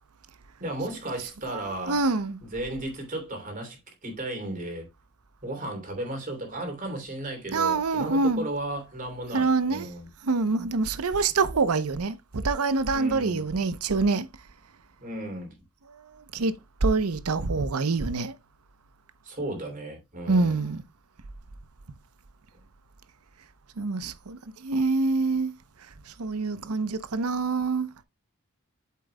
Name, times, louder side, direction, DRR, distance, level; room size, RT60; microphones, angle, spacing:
voice 1, 0.6-2.0 2.4-4.9 5.4-10.1 12.9-13.5 15.0-15.6 19.2-20.6, right 1 dB, 40° right, 3.1 m, -35 dB
voice 2, 1.9-2.4 7.5-8.5 9.3-9.9 10.2-14.3 15.9-16.0 16.3-16.5 16.8-18.3 20.3-20.8 23.8-25.5 26.2-27.9, right 3 dB, 85° right, 0.8 m, -25 dB
8.4 x 7.5 x 2.2 m
head